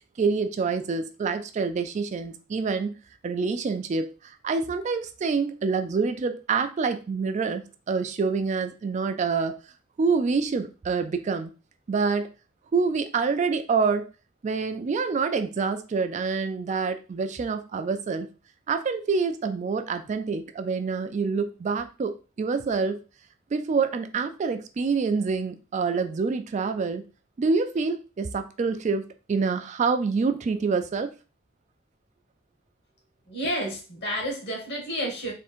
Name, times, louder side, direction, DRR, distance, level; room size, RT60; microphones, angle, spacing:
voice 1, 0.2-2.9 3.2-9.6 10.0-11.5 11.9-12.3 12.7-14.1 14.4-18.3 18.7-23.0 23.5-27.0 27.4-31.1, right 4 dB, 35° right, 9 dB, 0.3 m, -26 dB
voice 2, 33.3-35.3, equal, 55° left, 0 dB, 1.5 m, -30 dB
3.6 x 2.5 x 4.3 m, 0.33 s
head